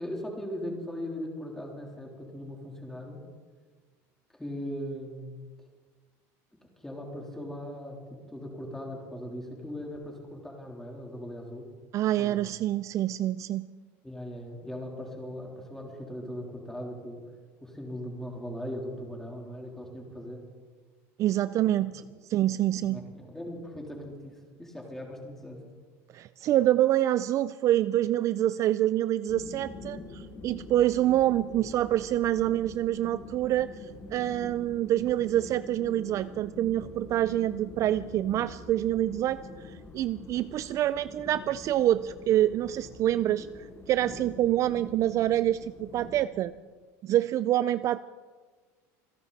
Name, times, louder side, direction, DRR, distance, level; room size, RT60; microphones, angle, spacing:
voice 1, 0.0-3.2 4.3-5.3 6.8-8.0 8.3-11.7 12.2-12.4 14.0-17.2 17.6-20.4 22.9-25.6, equal, 5° left, -1 dB, 3.4 m, -39 dB
voice 2, 11.9-13.7 21.2-22.0 22.3-23.0 26.1-33.7 34.1-46.5 47.0-48.0, right 13 dB, 40° right, 15 dB, 0.4 m, -26 dB
sound 1, 29.3-46.3, left 3 dB, 35° left, 3.0 m, -45 dB
27.0 x 11.0 x 4.1 m, 1.5 s
supercardioid pair, 130°, 8 cm